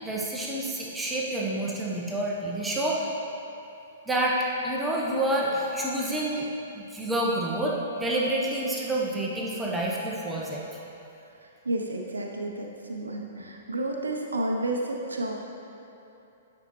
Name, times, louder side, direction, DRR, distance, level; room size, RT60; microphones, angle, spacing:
voice 1, 0.0-3.1 4.1-4.4 4.6-6.5 6.8-10.6, right 1 dB, 10° right, -4 dB, 0.8 m, -28 dB
voice 2, 11.6-15.3, right 1 dB, 75° right, 0 dB, 0.5 m, -31 dB
7.9 x 5.3 x 3.0 m, 2.8 s
figure-of-eight pair, 110°, 0 cm